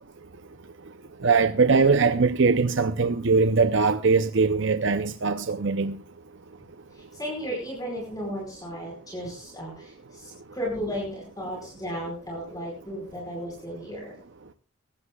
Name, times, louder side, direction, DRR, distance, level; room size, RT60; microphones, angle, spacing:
voice 1, 1.2-6.0, right 4 dB, 55° right, 0.6 m, -21 dB
voice 2, 6.9-14.1, equal, 15° left, 4.9 m, -34 dB
21.0 x 15.5 x 2.3 m
head